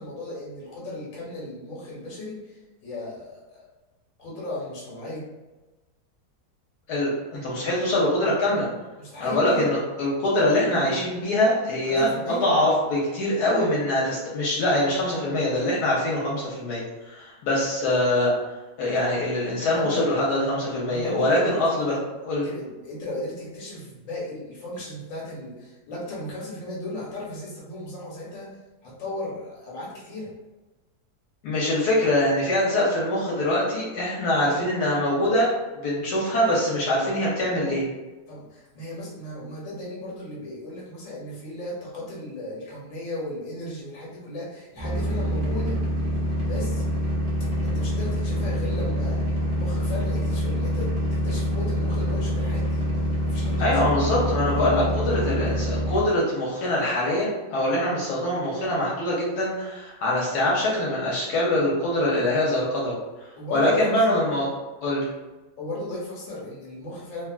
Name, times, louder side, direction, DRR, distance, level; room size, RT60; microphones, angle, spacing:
voice 1, 0.0-3.7 4.2-5.2 9.0-9.7 11.8-12.4 19.6-20.1 20.9-21.8 22.4-28.5 28.8-30.3 38.3-45.8 46.4-46.8 47.6-49.2 49.6-52.9 53.2-53.9 63.4-64.0 65.6-67.3, left 1 dB, 60° left, -5 dB, 1.3 m, -36 dB
voice 2, 6.9-8.7 9.2-18.3 18.8-22.0 22.2-22.5 31.4-35.5 35.8-37.8 53.6-62.9 63.5-64.5 64.8-65.1, left 1 dB, 80° left, -5 dB, 1.2 m, -23 dB
sound 1, 44.8-56.0, equal, 65° right, 0.3 m, -26 dB
3.0 x 2.3 x 2.3 m, 1.1 s
omnidirectional pair, 1.7 m